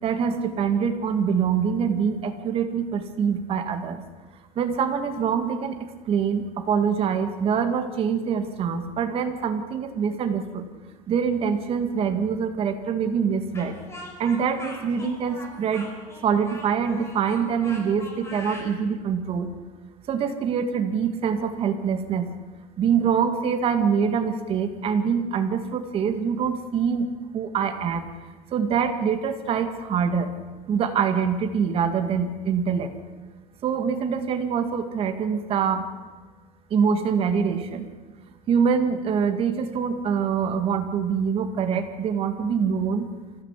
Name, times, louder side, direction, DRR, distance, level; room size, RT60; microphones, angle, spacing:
voice 1, 0.0-4.0 4.6-10.7 11.1-13.8 14.2-15.9 16.2-19.5 20.1-22.3 22.8-27.1 27.3-28.1 28.5-30.4 30.7-32.9 33.6-35.9 36.7-37.9 38.5-43.1, right 6 dB, 35° right, 7 dB, 2.2 m, -24 dB
Speech, 13.5-18.7, left 1 dB, 15° left, 5.0 m, -41 dB
25.0 x 15.5 x 8.4 m, 1.4 s
cardioid pair, 160°, 17 cm